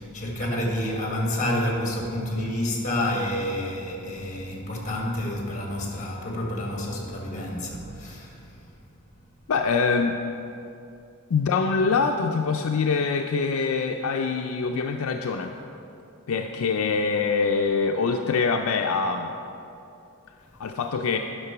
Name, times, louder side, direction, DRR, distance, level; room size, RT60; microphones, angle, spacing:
voice 1, 0.0-8.4, left 1 dB, 35° left, -1 dB, 1.8 m, -29 dB
voice 2, 9.5-10.2 11.3-15.5 16.3-19.3 20.6-21.2, left 4 dB, 70° left, 4 dB, 0.4 m, -24 dB
9.6 x 6.0 x 5.9 m, 2.7 s
head